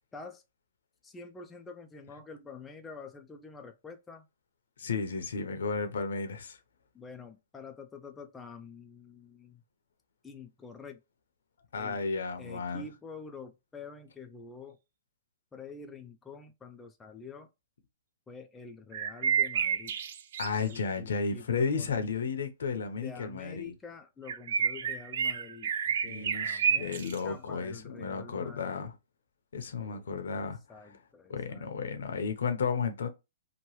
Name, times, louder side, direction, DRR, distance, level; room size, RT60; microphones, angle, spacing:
voice 1, 0.1-0.4 1.0-4.2 6.9-9.6 10.2-11.0 11.7-12.0 12.4-14.8 15.5-17.5 18.3-19.9 20.6-21.9 23.0-25.7 26.0-28.9 29.8-30.0 30.7-31.7, left 5 dB, 10° left, 0.4 m, -47 dB
voice 2, 4.8-6.6 11.7-12.8 20.4-23.7 26.0-28.9 29.5-31.0 31.3-33.1, left 5 dB, 75° left, 0.7 m, -33 dB
sound 1, 18.9-20.8 24.3-27.2, right 7 dB, 60° right, 0.4 m, -30 dB
2.9 x 2.2 x 3.1 m
hypercardioid pair, 145°, 0 cm